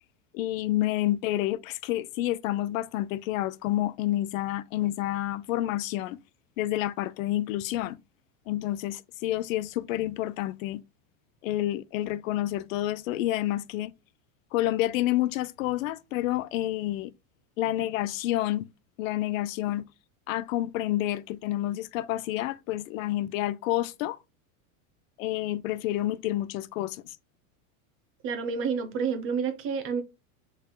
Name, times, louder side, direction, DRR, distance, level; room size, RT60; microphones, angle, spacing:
voice 1, 0.3-6.2 6.6-8.0 8.5-10.8 11.4-13.9 14.5-17.1 17.6-18.7 19.0-19.9 20.3-24.2 25.2-27.2, left 14 dB, 70° left, 0.5 m, -29 dB
voice 2, 28.2-30.0, right 6 dB, 30° right, 0.8 m, -29 dB
6.6 x 3.5 x 2.2 m
supercardioid pair, 155°, 42 cm